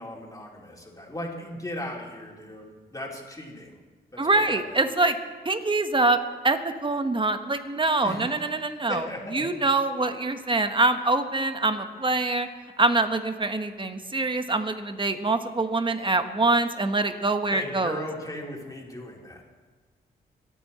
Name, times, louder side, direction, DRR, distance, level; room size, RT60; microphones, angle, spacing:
voice 1, 0.0-3.8 4.1-4.8 8.0-8.5 8.9-9.5 17.5-19.4, left 1 dB, 15° left, -2 dB, 4.1 m, -37 dB
voice 2, 4.2-5.2 5.4-6.2 6.4-9.0 9.3-12.5 12.8-18.0, right 2 dB, 25° right, 8 dB, 1.5 m, -24 dB
25.0 x 9.2 x 4.4 m, 1.4 s
supercardioid pair, 60°, 19 cm